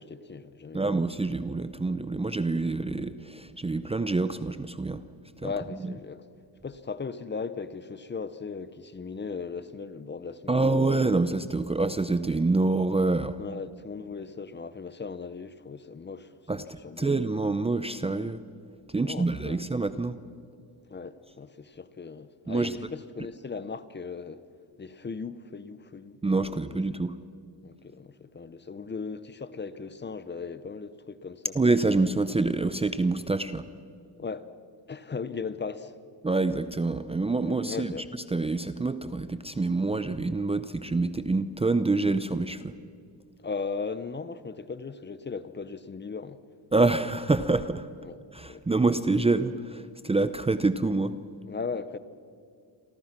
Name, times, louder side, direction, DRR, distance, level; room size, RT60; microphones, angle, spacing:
voice 1, 0.0-0.8 5.4-6.2 6.6-10.9 13.4-17.1 19.0-19.6 20.9-24.4 24.8-26.6 27.6-31.6 34.2-34.5 34.9-35.9 37.4-38.0 43.4-46.4 48.0-48.2 48.4-48.8 51.5-52.0, left 5 dB, 25° left, 0.9 m, -37 dB
voice 2, 0.7-5.0 5.4-5.5 5.8-5.9 10.5-13.4 16.5-18.4 18.9-20.2 22.5-22.8 26.2-27.2 31.5-33.7 36.2-37.9 38.3-42.8 46.7-47.9 48.3-51.2, right 3 dB, 15° right, 0.7 m, -26 dB
30.0 x 23.5 x 6.0 m
cardioid pair, 125°, 45 cm